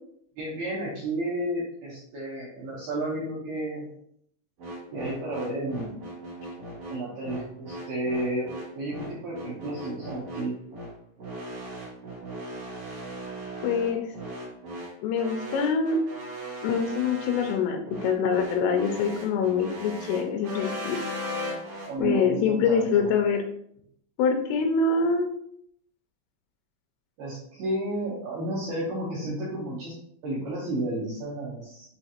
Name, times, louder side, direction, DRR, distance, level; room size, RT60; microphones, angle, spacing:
voice 1, 0.4-3.9 4.9-5.9 6.9-8.5 8.8-10.6 21.9-23.1 27.2-29.9 30.2-32.0, right 1 dB, 80° right, -7 dB, 2.2 m, -32 dB
sound 1, 4.6-21.9, equal, 65° right, 1.7 m, -38 dB
voice 2, 13.6-14.1 15.0-16.0 16.6-21.0 22.0-23.4 24.2-25.3, left 5 dB, 85° left, 4 dB, 2.9 m, -25 dB
7.5 x 2.5 x 2.8 m, 0.68 s
omnidirectional pair, 6.0 m